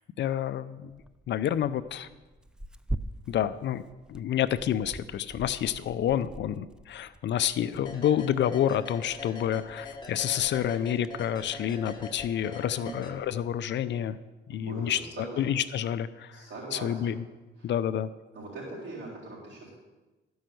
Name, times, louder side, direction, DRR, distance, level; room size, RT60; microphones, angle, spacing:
voice 1, 0.2-1.0 1.3-2.1 3.3-3.8 4.1-14.2 14.5-15.0 15.4-16.5 16.7-17.2 17.6-18.1, left 10 dB, 65° left, 13 dB, 0.5 m, -29 dB
Tearing, 0.9-13.5, right 1 dB, 5° right, 0.4 m, -44 dB
sound 1, 7.9-13.7, left 2 dB, 20° left, 1.6 m, -43 dB
voice 2, 12.8-13.1 14.5-15.4 16.3-17.2 17.6-17.7 18.3-19.7, right 2 dB, 65° right, -7 dB, 3.9 m, -41 dB
13.0 x 5.5 x 7.7 m, 1.2 s
cardioid pair, 90°, 20 cm